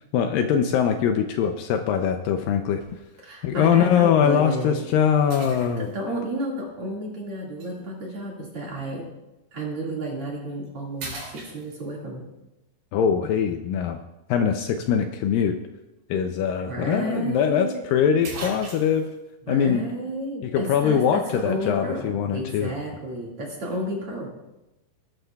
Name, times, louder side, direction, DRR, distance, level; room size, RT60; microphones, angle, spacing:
voice 1, 0.1-2.8 3.4-5.9 12.9-14.0 14.3-15.6 16.1-19.2 19.5-19.9 20.4-22.7, left 8 dB, 80° left, 6 dB, 2.1 m, -22 dB
sound 1, 2.8-3.1 3.8-3.9 5.3-6.1 7.6-7.7 9.9-10.1 10.5-10.7 11.0-12.1 16.2-16.3 16.6-16.7 17.7-17.8 18.2-19.1, right 2 dB, 70° right, 5.9 m, -38 dB
voice 2, 3.2-4.8 5.8-9.1 9.5-12.2 16.7-17.8 19.5-24.3, right 1 dB, 45° right, -3 dB, 2.5 m, -31 dB
19.0 x 11.5 x 2.3 m, 0.97 s
omnidirectional pair, 4.4 m